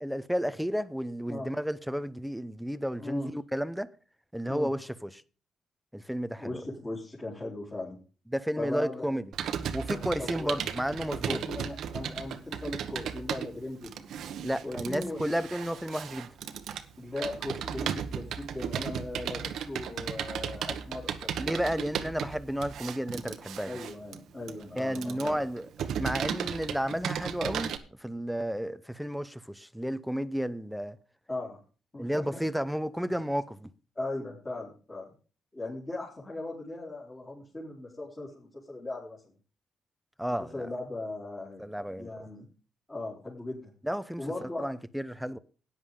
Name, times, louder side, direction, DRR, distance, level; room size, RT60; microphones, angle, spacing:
voice 1, 0.0-3.9 4.3-5.2 5.9-6.6 8.3-9.3 9.7-11.4 14.4-16.3 21.4-23.7 24.8-25.7 26.0-27.7 28.0-31.0 32.0-33.7 40.2-40.7 41.6-42.1 43.8-45.4, equal, ahead, 0.8 m, -32 dB
voice 2, 3.0-3.3 4.5-4.7 6.4-8.0 8.6-9.1 9.9-10.6 11.3-14.0 14.6-15.2 17.0-21.3 23.7-25.4 31.3-31.6 31.9-32.4 33.0-33.1 34.0-35.1 35.5-39.4 40.2-42.4 42.9-43.7 44.2-44.7, left 2 dB, 25° left, 3.8 m, -38 dB
Computer keyboard, 9.3-27.8, right 8 dB, 75° right, 1.1 m, -35 dB
14.0 x 9.7 x 3.8 m
cardioid pair, 90°, 0 cm